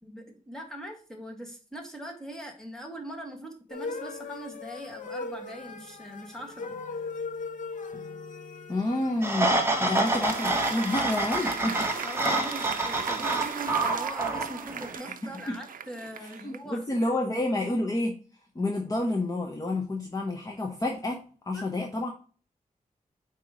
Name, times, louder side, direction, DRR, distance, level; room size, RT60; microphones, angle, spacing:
voice 1, 0.0-7.1 12.0-16.8 21.5-21.7, right 1 dB, 5° left, 1 dB, 1.6 m, -41 dB
sound 1, 3.7-14.1, left 4 dB, 65° left, 0.8 m, -40 dB
voice 2, 8.7-9.5 9.8-11.9 15.5-15.6 16.4-18.2 18.5-22.1, left 2 dB, 25° left, 0 dB, 0.9 m, -29 dB
Applause, 9.1-16.8, right 8 dB, 75° right, 0.4 m, -38 dB
sound 2, 9.2-14.9, right 2 dB, 15° right, 1.1 m, -28 dB
8.7 x 3.0 x 4.8 m, 0.39 s
wide cardioid pair, 135°, 14 cm